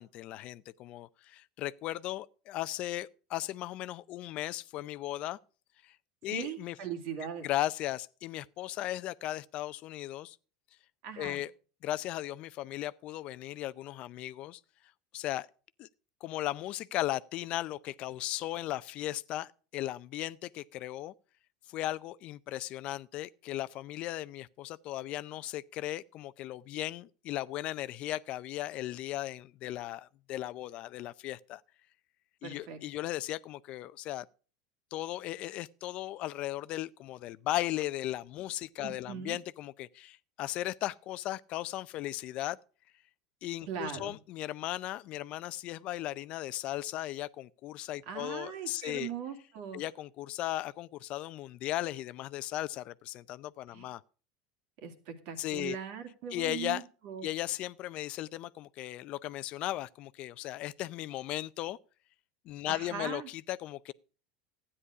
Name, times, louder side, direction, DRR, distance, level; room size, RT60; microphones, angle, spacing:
voice 1, 0.0-5.4 5.8-6.0 6.2-6.8 7.4-10.4 11.2-11.5 11.8-14.6 15.1-15.5 15.8-15.9 16.2-21.1 21.7-31.6 32.4-34.3 34.9-42.6 43.4-49.1 49.7-54.0 55.4-55.8 56.3-56.8 57.2-61.8 62.5-63.9, left 15 dB, 50° left, 0.5 m, -37 dB
voice 2, 6.3-7.5 11.0-11.4 32.4-32.8 38.8-39.4 43.7-44.1 48.1-49.8 53.7-53.9 54.8-57.3 62.6-63.3, right 8 dB, 65° right, 2.4 m, -40 dB
13.0 x 9.8 x 4.8 m
supercardioid pair, 110°, 2 cm